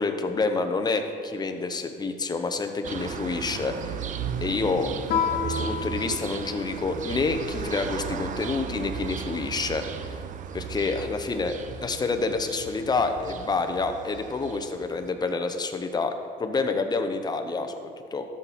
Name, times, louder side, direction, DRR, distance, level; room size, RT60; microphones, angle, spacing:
voice 1, 0.0-4.0 4.4-4.9 5.4-10.2 10.5-16.1 16.4-18.2, left 3 dB, 25° left, 7 dB, 0.9 m, -28 dB
sound 1, 2.8-15.1, right 7 dB, 50° right, 0.7 m, -36 dB
Guitar, 5.1-7.5, left 6 dB, 70° left, 1.2 m, -30 dB
12.5 x 7.4 x 4.3 m, 2.3 s
cardioid pair, 110°, 17 cm